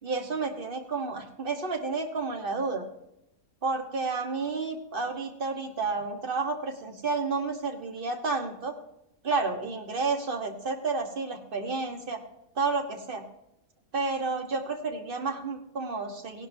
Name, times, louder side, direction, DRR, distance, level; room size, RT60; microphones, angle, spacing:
voice 1, 0.0-2.8 3.6-8.8 9.2-12.2 12.6-13.2 13.9-16.5, right 4 dB, 40° right, 4 dB, 1.3 m, -31 dB
17.5 x 11.5 x 2.7 m, 0.85 s
omnidirectional pair, 1.6 m